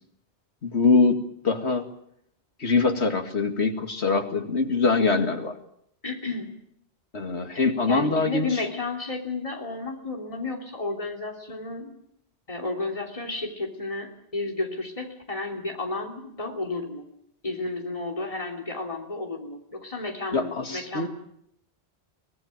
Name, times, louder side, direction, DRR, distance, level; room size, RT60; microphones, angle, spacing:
voice 1, 0.6-1.2 1.4-1.9 2.6-5.5 7.1-8.5 20.3-21.1, left 4 dB, 85° left, 6 dB, 2.5 m, -23 dB
voice 2, 6.0-6.5 7.5-11.9 12.5-17.0 17.4-21.1, left 3 dB, 30° left, 2 dB, 3.2 m, -32 dB
23.0 x 18.5 x 9.0 m, 0.73 s
omnidirectional pair, 1.1 m